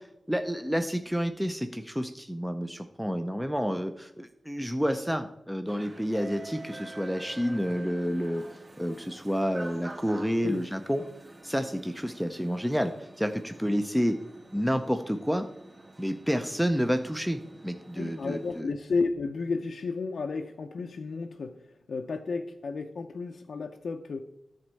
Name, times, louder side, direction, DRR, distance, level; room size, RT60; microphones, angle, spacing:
voice 1, 0.3-8.4 8.8-11.0 11.4-14.2 14.5-15.5 16.0-18.7, equal, ahead, 6 dB, 0.6 m, -29 dB
sound 1, 5.7-18.6, right 2 dB, 40° right, 1.7 m, -47 dB
voice 2, 18.0-24.2, left 4 dB, 75° left, 3 dB, 0.6 m, -32 dB
10.5 x 4.3 x 7.6 m, 0.86 s
wide cardioid pair, 90°, 0 cm